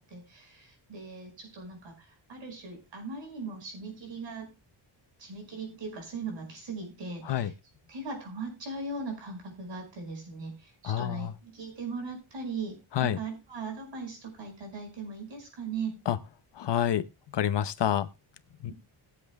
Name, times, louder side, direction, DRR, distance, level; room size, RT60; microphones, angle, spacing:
voice 1, 0.0-4.5 5.2-7.5 7.9-16.0, right 4 dB, 60° right, 5.2 m, -39 dB
voice 2, 10.8-11.3 12.9-13.2 16.1-16.2 16.5-17.0 17.3-18.1 18.6-18.7, left 10 dB, 55° left, 0.8 m, -27 dB
20.5 x 7.8 x 2.3 m
wide cardioid pair, 175°, 49 cm